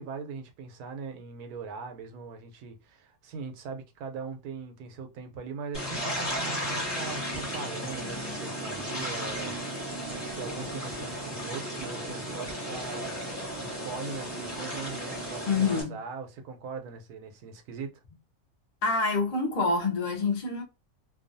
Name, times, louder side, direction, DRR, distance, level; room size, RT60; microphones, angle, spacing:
voice 1, 0.0-9.8 10.1-13.1 13.6-18.0, right 5 dB, 90° right, 1.1 m, -40 dB
sound 1, 5.7-15.8, equal, 20° left, 0.8 m, -34 dB
voice 2, 15.4-16.0 18.8-20.6, left 4 dB, 45° left, 0.5 m, -26 dB
2.6 x 2.3 x 2.5 m
omnidirectional pair, 1.6 m